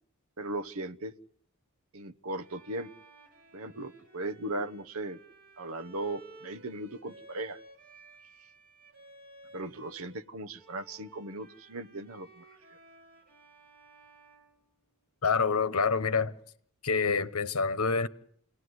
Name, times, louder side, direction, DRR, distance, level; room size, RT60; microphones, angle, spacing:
voice 1, 0.4-1.2 1.9-2.9 3.5-5.2 5.6-7.6 9.5-12.4, right 2 dB, 70° right, 1.1 m, -37 dB
Bowed string instrument, 2.4-10.3 10.5-15.3, right 2 dB, 45° right, 5.1 m, -56 dB
voice 2, 15.2-16.3 16.8-18.1, left 5 dB, 75° left, 1.2 m, -27 dB
28.5 x 18.5 x 9.6 m
head